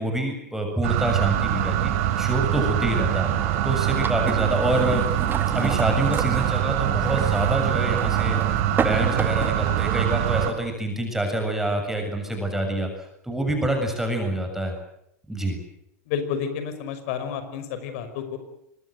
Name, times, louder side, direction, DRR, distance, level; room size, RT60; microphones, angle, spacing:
voice 1, 0.0-3.3 3.6-5.0 5.5-12.9 13.2-14.7 15.3-15.6, right 1 dB, 5° right, 3 dB, 7.3 m, -26 dB
sound 1, 0.8-10.5, right 11 dB, 60° right, 3.7 m, -24 dB
sound 2, 3.1-10.0, right 6 dB, 25° right, 1.8 m, -32 dB
voice 2, 16.1-18.4, left 7 dB, 60° left, 9 dB, 5.6 m, -30 dB
26.0 x 22.0 x 8.0 m, 0.77 s
hypercardioid pair, 95°, 8 cm